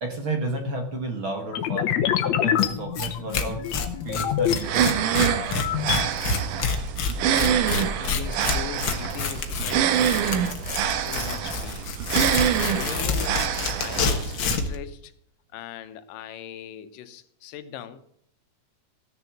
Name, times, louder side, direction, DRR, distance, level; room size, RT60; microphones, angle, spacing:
voice 1, 0.0-1.9 2.2-3.6 4.0-4.9, right 2 dB, 50° right, 4 dB, 1.6 m, -31 dB
sound 1, 1.5-4.6 5.1-6.1, left 10 dB, 65° left, 2.0 m, -26 dB
Tearing, 2.6-2.7 3.0-3.1 3.3-14.8, left 4 dB, 50° left, 1.5 m, -28 dB
sound 2, 4.6-14.6, right 9 dB, 75° right, 2.5 m, -26 dB
voice 2, 7.3-10.5 10.8-12.0 12.6-15.1 15.5-18.0, left 9 dB, 85° left, 11 dB, 2.6 m, -40 dB
15.5 x 6.9 x 8.4 m, 0.66 s
omnidirectional pair, 3.8 m